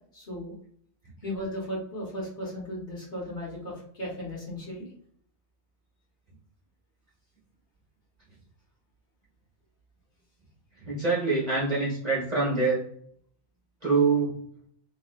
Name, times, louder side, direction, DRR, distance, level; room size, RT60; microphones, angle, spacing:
voice 1, 0.1-0.5 1.2-4.9, equal, 45° left, -6 dB, 1.5 m, -36 dB
voice 2, 10.8-12.8 13.8-14.3, right 4 dB, 35° right, -6 dB, 1.2 m, -25 dB
3.1 x 2.8 x 2.3 m, 0.63 s
omnidirectional pair, 1.2 m